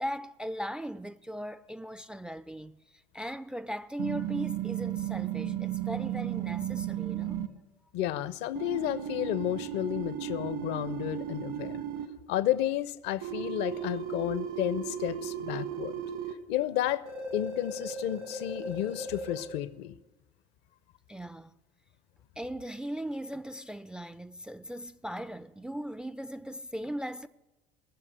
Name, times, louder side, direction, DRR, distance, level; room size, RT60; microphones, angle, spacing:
voice 1, 0.0-7.4 21.1-21.6 22.4-27.3, equal, 5° right, 0.4 m, -38 dB
sound 1, 4.0-7.5 8.6-12.1 13.2-16.3 17.1-19.4, right 9 dB, 65° right, 1.7 m, -35 dB
voice 2, 7.9-11.8 12.3-16.0 16.5-17.1 17.3-20.0, left 13 dB, 55° left, 0.7 m, -32 dB
18.0 x 7.2 x 8.2 m
figure-of-eight pair, 60°, 21 cm